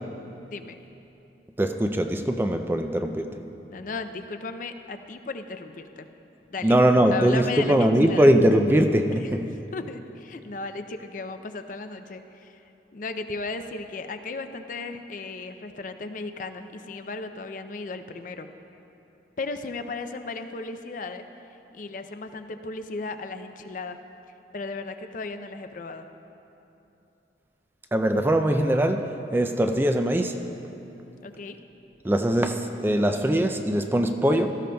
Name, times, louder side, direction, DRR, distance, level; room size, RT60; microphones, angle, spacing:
voice 1, 1.6-3.3 6.6-9.5 27.9-30.4 32.0-34.5, right 1 dB, 10° right, 6 dB, 0.3 m, -21 dB
voice 2, 3.7-6.1 6.5-6.8 7.1-8.3 9.2-12.6 12.9-18.5 19.4-21.3 21.7-24.0 24.5-26.1 31.2-31.6, left 3 dB, 45° left, 8 dB, 0.5 m, -35 dB
17.5 x 13.5 x 2.3 m, 3.0 s
head